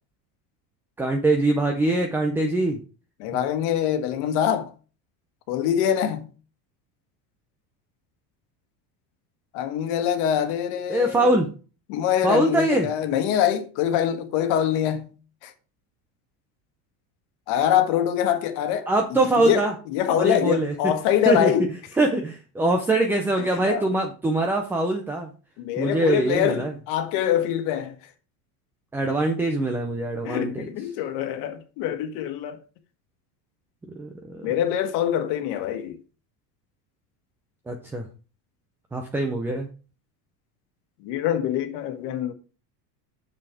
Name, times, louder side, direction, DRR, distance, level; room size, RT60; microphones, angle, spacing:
voice 1, 1.0-2.8 10.9-11.5 12.2-12.9 18.9-19.7 20.2-20.9 21.3-21.5 22.0-25.3 25.8-26.7 28.9-30.7 33.9-34.5 37.7-38.1 38.9-39.7, right 2 dB, 5° right, 0.3 m, -23 dB
voice 2, 3.2-4.7 5.5-6.3 9.5-11.3 11.9-15.1 15.4-15.5 17.5-18.9 19.4-21.7 23.7-23.8 25.6-27.9 30.2-32.6 34.4-35.9 41.0-42.3, left 10 dB, 65° left, 1.5 m, -24 dB
6.9 x 6.0 x 4.7 m
cardioid pair, 160°, 45 cm